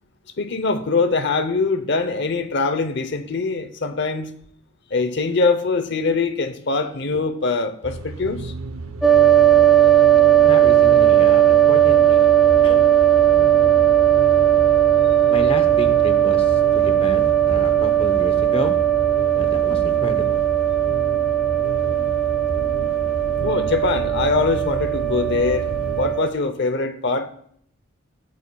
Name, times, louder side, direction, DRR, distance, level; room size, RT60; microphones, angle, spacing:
voice 1, 0.4-4.3 4.9-8.5 23.4-25.7 26.0-27.3, left 3 dB, 55° left, 9 dB, 0.8 m, -23 dB
sound 1, 7.8-26.2, right 2 dB, 85° right, 0.7 m, -32 dB
sound 2, 9.0-26.3, right 11 dB, ahead, 0.4 m, -17 dB
voice 2, 10.4-12.3 12.6-13.0 15.3-18.8 19.4-20.5, left 1 dB, 25° left, 6 dB, 0.8 m, -30 dB
18.5 x 8.2 x 2.3 m, 0.65 s
head